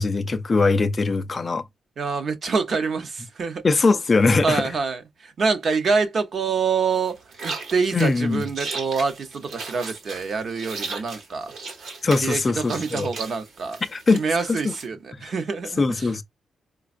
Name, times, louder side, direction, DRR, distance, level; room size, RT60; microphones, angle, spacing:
voice 1, 0.0-1.6 3.6-4.6 7.9-8.4 12.0-13.1 13.9-14.2 14.5-14.7 15.8-16.2, left 3 dB, 25° left, 0.4 m, -21 dB
voice 2, 2.0-3.6 4.4-11.5 12.2-13.8 14.1-16.1, right 5 dB, 45° right, 0.7 m, -26 dB
sound 1, 6.9-14.9, right 4 dB, 75° right, 1.1 m, -36 dB
4.9 x 2.2 x 2.5 m
wide cardioid pair, 165°, 0 cm